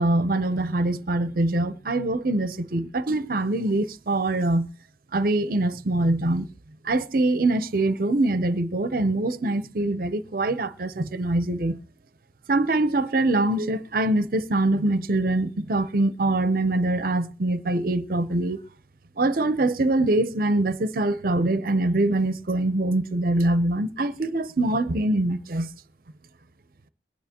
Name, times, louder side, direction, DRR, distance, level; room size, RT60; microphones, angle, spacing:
voice 1, 0.0-4.7 5.1-6.5 6.8-11.8 12.5-18.6 19.2-25.7, right 2 dB, 50° right, 0.7 m, -24 dB
22.0 x 9.3 x 2.9 m
head